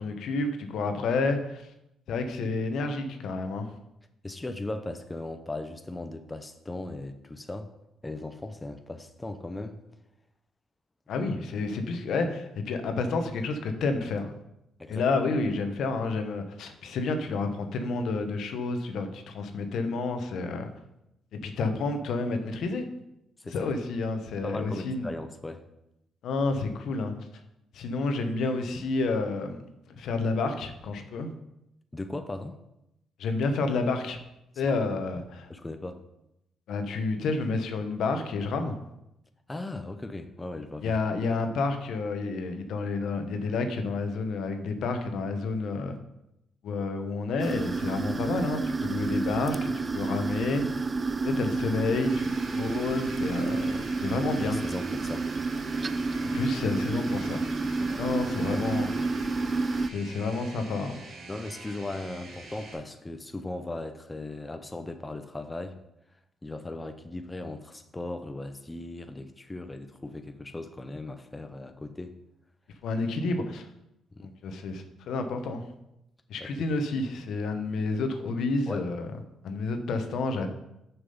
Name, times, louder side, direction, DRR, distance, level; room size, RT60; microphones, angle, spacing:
voice 1, 0.0-1.6 2.1-3.7 11.1-14.3 14.9-20.7 21.4-22.9 23.5-25.1 26.2-27.1 27.7-29.6 29.9-31.3 33.2-34.2 34.6-35.5 36.7-38.8 40.8-45.9 46.6-50.9 51.2-53.7 54.0-54.6 56.3-57.4 57.8-58.9 59.9-61.0 72.8-73.7 74.2-75.6 76.3-79.1 79.4-80.5, left 3 dB, 75° left, 7 dB, 1.0 m, -30 dB
voice 2, 4.2-7.7 8.0-9.8 14.8-15.0 23.4-23.7 24.4-25.6 31.9-32.6 34.7-34.8 35.5-36.0 39.5-41.0 54.4-55.3 57.9-58.6 58.9-59.1 61.3-65.8 66.4-72.1 74.1-74.3 76.4-76.7 78.7-78.8, left 2 dB, 15° left, 7 dB, 0.7 m, -38 dB
sound 1, 47.4-59.9, right 3 dB, 30° right, 0.4 m, -30 dB
sound 2, 52.1-62.7, right 2 dB, 85° right, 2.5 m, -46 dB
6.6 x 6.0 x 5.4 m, 0.85 s
cardioid pair, 90°, 0 cm